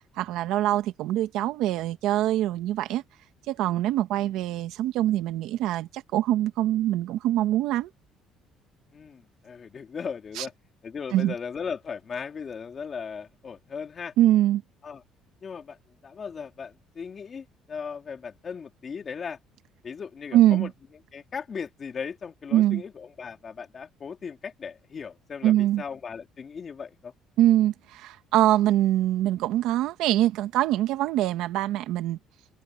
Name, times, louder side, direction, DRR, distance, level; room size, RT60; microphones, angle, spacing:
voice 1, 0.2-3.0 3.5-7.9 10.4-10.5 11.1-11.3 14.2-14.6 20.3-20.7 22.5-22.8 25.4-25.8 27.4-32.2, right 13 dB, 75° right, 1.4 m, -23 dB
voice 2, 8.9-10.5 10.8-14.1 14.8-15.0 15.4-15.8 16.0-19.4 19.8-20.7 21.1-27.1, left 6 dB, 30° left, 3.0 m, -37 dB
cardioid pair, 145°, 0 cm